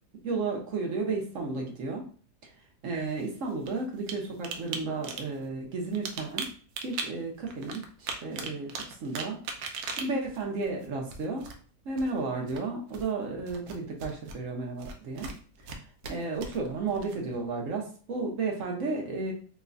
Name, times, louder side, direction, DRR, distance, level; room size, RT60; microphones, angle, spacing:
voice 1, 0.2-2.1 2.4-2.5 2.8-6.5 6.8-9.4 10.0-11.5 11.8-15.3 15.7-19.3, right 3 dB, 60° right, 1 dB, 1.0 m, -33 dB
sound 1, 3.0-4.1 4.4-4.8 5.0-5.4 5.8-7.0 7.5-11.6 12.0-12.2 12.5-13.1 13.5-14.3 14.8-15.8 16.0-17.4, right 5 dB, 80° right, 1.1 m, -38 dB
3.1 x 2.2 x 3.7 m, 0.42 s
omnidirectional pair, 1.7 m